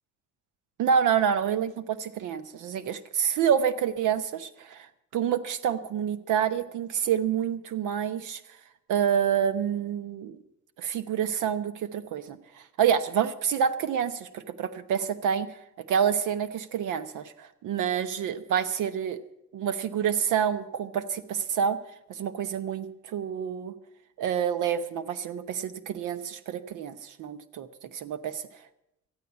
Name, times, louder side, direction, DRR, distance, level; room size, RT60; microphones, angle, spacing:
voice 1, 0.8-8.4 8.9-10.4 10.8-15.5 15.9-19.2 19.5-21.8 22.1-23.7 24.2-28.4, right 8 dB, 85° right, 13 dB, 1.0 m, -28 dB
13.5 x 9.5 x 8.1 m, 0.84 s
cardioid pair, 90°, 30 cm